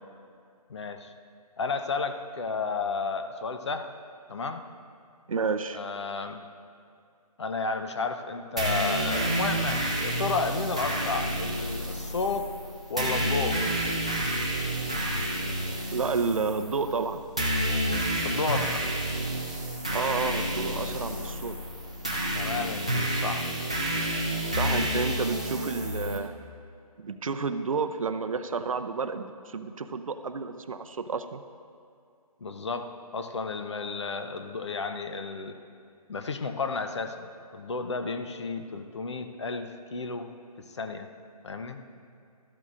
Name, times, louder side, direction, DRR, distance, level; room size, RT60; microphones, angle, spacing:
voice 1, 0.7-1.1 1.6-3.9 4.3-4.6 5.7-6.4 7.4-12.5 12.9-13.6 18.2-18.9 22.3-23.5 32.4-32.9 33.1-35.6 36.1-40.3 40.7-41.1 41.4-41.8, left 4 dB, 45° left, 7 dB, 0.7 m, -32 dB
voice 2, 5.3-5.8 15.9-17.2 19.9-21.6 24.5-26.3 27.0-31.4, right 4 dB, 60° right, 10 dB, 0.6 m, -30 dB
sound 1, 8.6-26.2, right 1 dB, 10° right, 0.3 m, -29 dB
13.5 x 12.0 x 2.5 m, 2.4 s
figure-of-eight pair, 160°, 20 cm